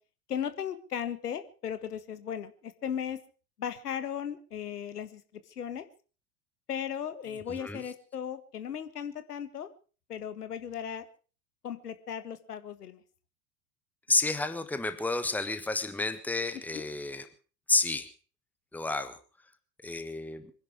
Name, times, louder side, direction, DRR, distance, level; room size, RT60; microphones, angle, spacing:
voice 1, 0.3-3.2 3.6-5.2 5.5-5.9 6.7-9.7 10.1-11.0 11.6-13.0 16.7-16.8, left 8 dB, 70° left, 12 dB, 1.7 m, -36 dB
voice 2, 7.5-7.8 14.1-17.3 17.7-18.1 18.7-19.2 19.8-20.5, left 3 dB, 5° left, 11 dB, 1.3 m, -30 dB
24.5 x 11.0 x 5.0 m, 0.38 s
figure-of-eight pair, 80°, 48 cm